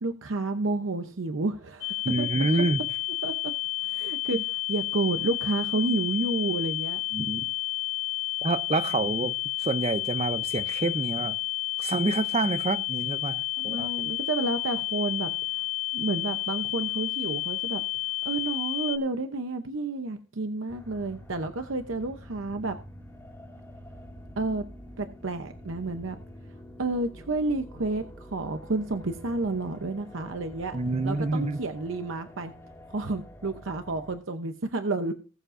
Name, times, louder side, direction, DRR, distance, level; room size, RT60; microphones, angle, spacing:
voice 1, 0.0-2.3 3.2-3.5 3.8-4.4 4.7-7.0 13.6-15.3 15.9-17.8 18.2-22.8 24.4-24.6 25.0-26.2 26.8-30.8 31.0-32.5 32.9-35.1, right 2 dB, 70° right, 0.8 m, -30 dB
sound 1, 1.8-19.0, left 18 dB, 60° left, 0.8 m, -31 dB
voice 2, 2.0-2.8 4.3-4.4 7.1-7.5 8.4-11.4 11.8-13.9 30.7-31.6, right 3 dB, 30° right, 0.5 m, -28 dB
sound 2, 20.7-34.2, equal, 15° left, 2.0 m, -47 dB
20.0 x 7.5 x 2.6 m
head